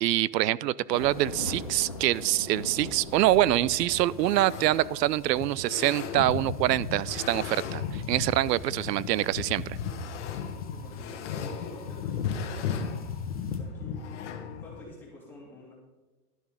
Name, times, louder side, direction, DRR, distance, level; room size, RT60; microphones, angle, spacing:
voice 1, 0.0-9.8, right 14 dB, 85° right, 21 dB, 0.6 m, -25 dB
sound 1, 0.9-13.6, left 3 dB, 25° left, 0.4 m, -45 dB
sound 2, 3.2-14.8, left 6 dB, 45° left, 1.1 m, -35 dB
voice 2, 10.0-12.9 13.5-14.3 14.6-15.7, left 1 dB, 5° left, -6 dB, 2.3 m, -48 dB
12.0 x 7.2 x 5.1 m, 1.2 s
supercardioid pair, 180°, 48 cm